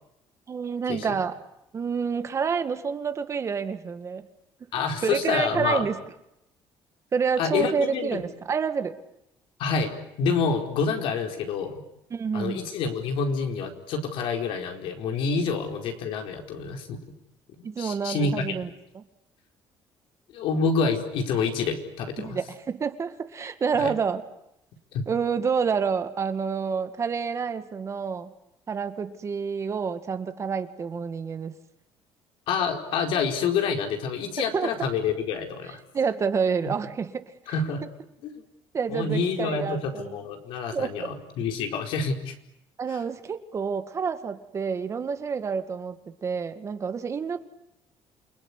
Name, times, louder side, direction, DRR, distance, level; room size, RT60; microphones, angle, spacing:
voice 1, 0.5-1.4 1.7-4.2 5.0-6.0 7.1-9.0 12.1-12.7 17.6-19.0 22.2-24.2 25.1-28.3 28.7-31.5 34.5-34.7 35.9-37.3 38.7-40.2 40.7-41.1 42.8-47.4, right 6 dB, 35° right, 9 dB, 1.9 m, -28 dB
voice 2, 4.7-5.9 7.4-8.2 9.6-11.8 12.3-17.0 17.6-18.4 20.3-22.4 23.8-23.9 24.9-25.0 32.5-35.8 37.5-37.9 38.2-38.3 38.9-42.3, left 5 dB, 75° left, 4 dB, 4.6 m, -27 dB
28.5 x 21.0 x 9.9 m, 0.81 s
cardioid pair, 125°, 9 cm